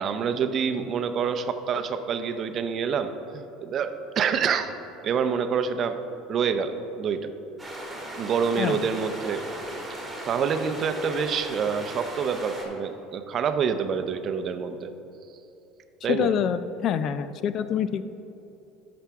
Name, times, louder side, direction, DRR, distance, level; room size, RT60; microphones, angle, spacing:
voice 1, 0.0-4.7 5.0-6.0 6.3-7.3 8.2-9.4 9.9-14.9 16.0-16.3, right 6 dB, 45° right, 9 dB, 0.6 m, -27 dB
sound 1, 7.6-12.6, right 1 dB, 5° right, 2.0 m, -37 dB
voice 2, 16.1-18.0, left 8 dB, 50° left, 13 dB, 0.4 m, -26 dB
11.0 x 6.0 x 3.5 m, 2.9 s
supercardioid pair, 100°, 0 cm